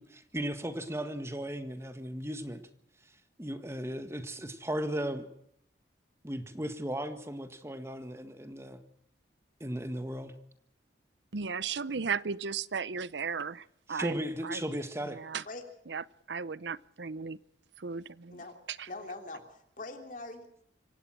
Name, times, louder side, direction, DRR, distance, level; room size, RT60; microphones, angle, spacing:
voice 1, 0.0-2.6 3.4-5.3 6.2-8.8 9.6-10.3 13.9-15.2, equal, 15° right, 9 dB, 1.7 m, -36 dB
voice 2, 11.3-14.1 14.4-14.6 15.1-15.4 15.9-17.4 17.8-18.4 18.7-18.9, right 5 dB, 70° right, 19 dB, 0.7 m, -36 dB
voice 3, 18.9-20.6, left 2 dB, 45° left, 5 dB, 3.3 m, -43 dB
26.0 x 16.5 x 6.2 m, 0.72 s
head